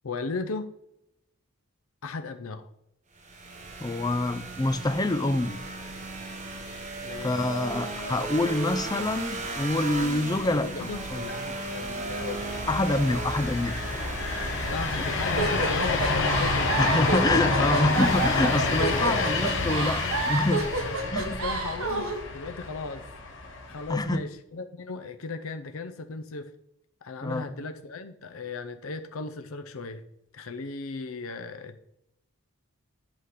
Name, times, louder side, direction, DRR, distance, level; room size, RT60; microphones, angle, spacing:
voice 1, 0.0-0.7 2.0-2.7 7.0-7.5 10.4-12.5 14.7-16.7 18.7-19.3 20.8-23.1 23.7-26.5 27.0-30.0 30.3-31.8, left 4 dB, 70° left, 8 dB, 0.6 m, -36 dB
sound 1, 3.2-21.0, right 2 dB, 30° right, 1.2 m, -37 dB
voice 2, 3.8-5.6 7.2-11.2 12.7-13.8 16.8-21.4 23.9-24.2 27.2-27.5, left 2 dB, 15° left, 10 dB, 0.4 m, -26 dB
sound 2, 12.2-24.1, left 3 dB, 55° left, 1.3 m, -29 dB
sound 3, 15.4-22.2, right 3 dB, 70° right, 1.3 m, -29 dB
8.4 x 3.8 x 6.5 m, 0.83 s
head